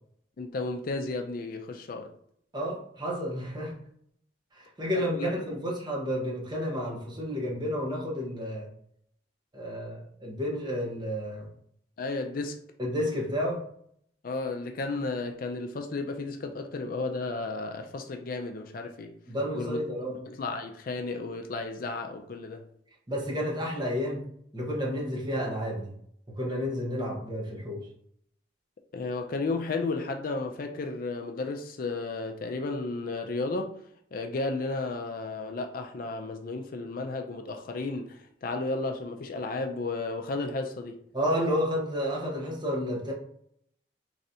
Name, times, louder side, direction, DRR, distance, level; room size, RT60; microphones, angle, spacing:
voice 1, 0.4-2.1 4.9-5.3 12.0-12.6 14.2-19.2 19.5-19.8 20.3-22.6 28.9-33.8 34.1-41.0, left 3 dB, 50° left, 0.4 m, -33 dB
voice 2, 2.5-3.7 4.5-8.7 9.5-11.5 12.8-13.6 19.3-20.2 23.1-24.2 24.5-25.9 26.3-27.9 41.1-43.1, equal, 25° right, 1.1 m, -31 dB
3.9 x 3.2 x 2.7 m
head